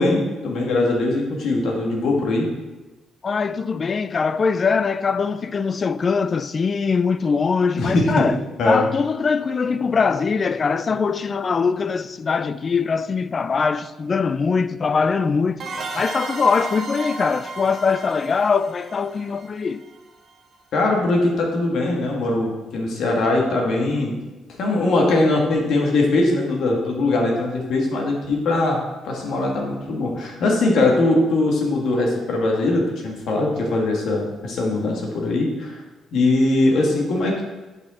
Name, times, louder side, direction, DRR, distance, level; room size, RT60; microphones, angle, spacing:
voice 1, 0.0-2.5 7.8-8.3 8.6-8.9 20.7-24.2 24.6-28.8 29.1-35.8 36.1-37.4, left 2 dB, 70° left, 1.9 m, -21 dB
voice 2, 3.2-8.4 8.7-15.6 15.9-19.8, left 5 dB, 40° left, 0.3 m, -22 dB
sound 1, 15.6-20.1, right 3 dB, 55° right, 1.3 m, -34 dB
7.9 x 6.2 x 4.2 m
cardioid pair, 90°, 0 cm